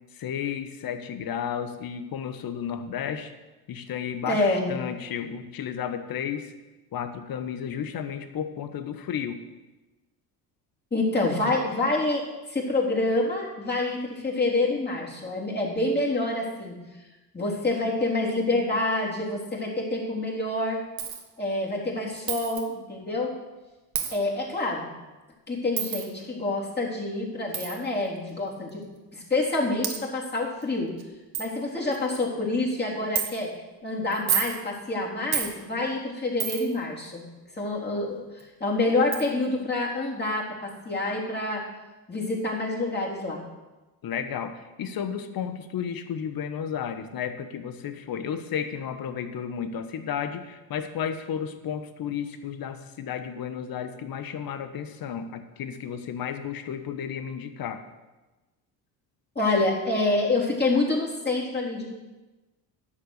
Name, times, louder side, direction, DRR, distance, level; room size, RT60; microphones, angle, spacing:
voice 1, 0.1-3.3 3.7-6.5 6.9-9.4 37.9-38.1 44.0-57.8, left 8 dB, 45° left, 9 dB, 1.3 m, -33 dB
voice 2, 4.3-4.7 10.9-16.8 17.3-20.8 21.4-23.3 24.1-24.9 25.5-30.9 31.4-33.5 33.8-37.3 37.5-41.6 42.1-43.4 59.4-61.9, left 2 dB, 20° left, -3 dB, 3.8 m, -27 dB
Coin (dropping), 21.0-21.2 22.3-22.6 23.9-24.2 25.8-26.1 27.5-27.7 28.7-28.8 29.5-29.6 29.8-30.0 30.6-30.7 31.0-31.1 31.3-31.5 31.9-32.2 33.2-33.3 34.1-34.6 35.3-35.5 36.4-36.8 38.4-38.5 39.1-39.2, right 9 dB, 45° right, 1.7 m, -29 dB
11.0 x 7.1 x 6.7 m, 1.1 s
hypercardioid pair, 65°, 49 cm